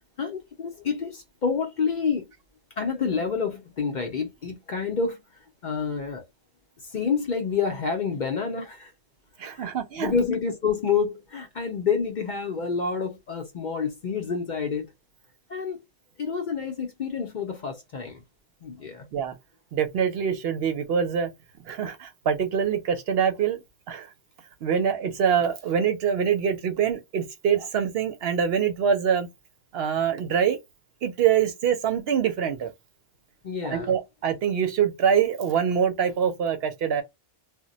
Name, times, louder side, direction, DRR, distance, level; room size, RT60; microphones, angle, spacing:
voice 1, 0.2-2.2 2.8-5.2 5.6-6.2 6.8-8.9 9.4-14.9 15.5-15.8 16.2-18.2 18.6-19.1 33.4-33.9, left 5 dB, 55° left, 0.6 m, -28 dB
voice 2, 9.4-10.1 19.1-19.3 19.7-21.3 21.7-23.6 23.9-24.1 24.6-29.3 29.7-30.6 31.0-32.7 33.7-37.0, right 7 dB, 65° right, 0.8 m, -24 dB
2.1 x 2.1 x 3.7 m
omnidirectional pair, 1.2 m